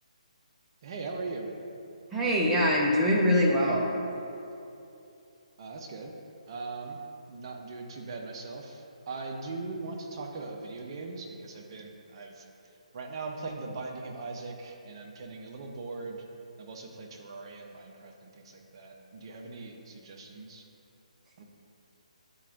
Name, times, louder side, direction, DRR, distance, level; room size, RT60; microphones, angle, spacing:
voice 1, 0.8-1.5 5.6-6.1 6.5-7.0 7.3-12.4 12.9-16.2 16.6-20.6 21.4-21.5, right 3 dB, 40° right, 2 dB, 0.7 m, -40 dB
voice 2, 2.1-3.9, equal, 10° right, -4 dB, 0.8 m, -23 dB
10.0 x 4.3 x 2.6 m, 2.8 s
figure-of-eight pair, 140°, 4 cm